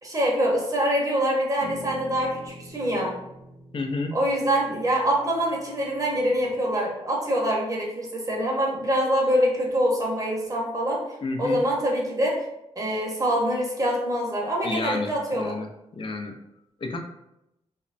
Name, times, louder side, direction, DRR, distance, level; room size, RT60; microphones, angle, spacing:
voice 1, 0.0-3.1 4.1-11.0 11.4-12.4 12.8-15.5, equal, 30° right, -2 dB, 0.8 m, -25 dB
sound 1, 1.6-6.6, left 2 dB, 30° left, 0.8 m, -45 dB
voice 2, 3.7-4.2 11.2-11.6 14.6-15.7 15.9-16.4 16.8-17.0, left 3 dB, 45° left, 4 dB, 0.4 m, -30 dB
2.9 x 2.1 x 2.5 m, 0.86 s
cardioid pair, 70°, 12 cm